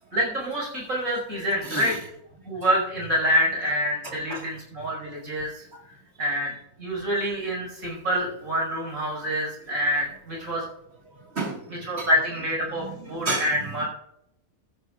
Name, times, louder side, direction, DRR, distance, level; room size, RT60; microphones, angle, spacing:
voice 1, 0.1-2.0 2.5-5.6 6.2-6.5 6.8-10.7 11.8-13.9, equal, 70° right, -2 dB, 5.9 m, -26 dB
voice 2, 1.6-2.0 4.0-4.5 5.7-5.8 11.4-12.1 12.8-13.5 13.8-13.9, right 3 dB, 45° right, 2 dB, 2.2 m, -32 dB
14.0 x 13.5 x 2.5 m, 0.78 s
omnidirectional pair, 1.5 m